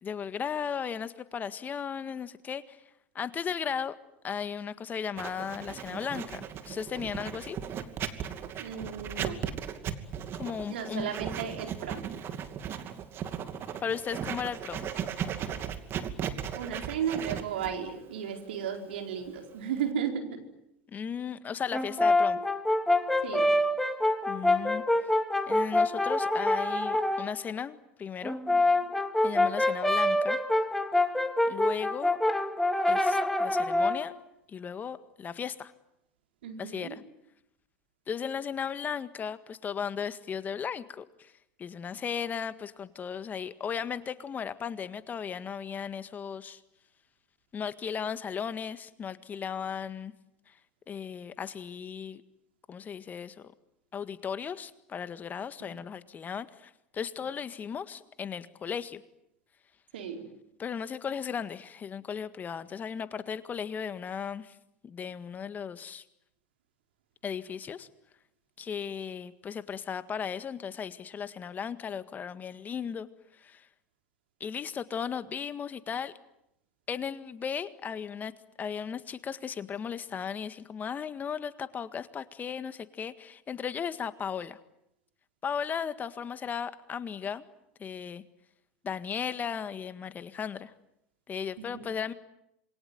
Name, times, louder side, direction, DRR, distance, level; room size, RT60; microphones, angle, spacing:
voice 1, 0.0-2.8 3.1-3.9 4.2-7.6 10.3-11.1 13.8-14.9 20.9-22.4 24.3-24.8 25.5-28.4 29.2-30.4 31.4-32.2 32.9-34.1 34.5-35.7 36.6-37.0 38.1-41.3 41.6-46.6 47.5-50.1 50.5-50.6 50.9-52.2 52.7-53.5 53.9-59.0 60.6-64.6 64.8-66.0 67.2-67.9 68.6-73.1 73.3-73.7 74.4-76.1 76.9-78.3 78.6-84.6 85.4-87.4 87.8-88.2 88.8-90.7 91.3-92.1, left 7 dB, 30° left, 12 dB, 1.7 m, -36 dB
Writing, 5.2-19.9, right 8 dB, 45° right, 2.6 m, -37 dB
voice 2, 8.6-9.4 10.7-12.3 16.5-20.4 23.2-23.5 28.5-28.6 36.4-37.0 55.6-55.7 59.9-60.3 91.6-91.9, right 8 dB, 80° right, 4 dB, 4.5 m, -35 dB
Brass instrument, 21.7-27.3 28.2-34.1, left 2 dB, 5° left, 2.3 m, -26 dB
27.5 x 23.0 x 9.3 m, 0.82 s
hypercardioid pair, 85°, 6 cm